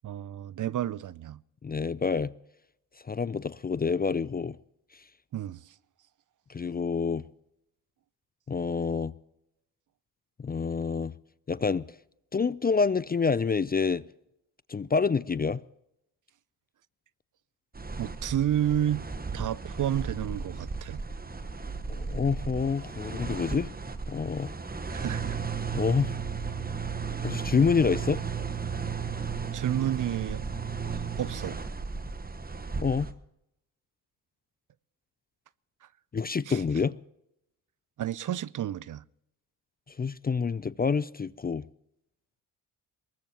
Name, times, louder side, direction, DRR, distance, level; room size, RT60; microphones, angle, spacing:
voice 1, 0.0-1.4 5.3-5.7 18.0-19.0 19.3-21.0 24.9-25.6 29.5-30.4 30.9-31.6 36.5-36.6 38.0-39.0, right 11 dB, 50° right, 0.6 m, -31 dB
voice 2, 1.6-2.3 3.1-4.6 6.5-7.2 8.5-9.1 10.4-11.1 11.5-11.8 12.3-14.0 14.7-15.6 21.9-23.7 24.1-24.5 25.7-26.2 27.2-28.2 32.8-33.1 36.1-37.0 40.0-41.6, left 5 dB, 25° left, 0.5 m, -27 dB
sound 1, 17.7-33.1, right 5 dB, 20° right, 1.3 m, -35 dB
22.5 x 19.5 x 3.0 m
supercardioid pair, 55°, 41 cm